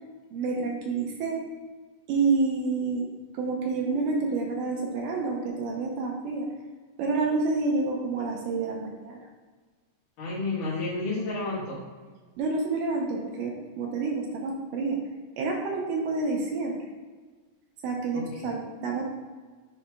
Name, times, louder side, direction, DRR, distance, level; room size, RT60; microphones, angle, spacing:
voice 1, 0.3-1.4 2.1-6.5 7.0-9.2 12.4-15.0 15.4-16.9 17.8-19.1, right 3 dB, 75° right, -1 dB, 2.4 m, -28 dB
voice 2, 10.2-11.8 18.1-18.5, left 2 dB, 75° left, -8 dB, 3.3 m, -31 dB
11.0 x 4.2 x 2.3 m, 1.4 s
omnidirectional pair, 3.9 m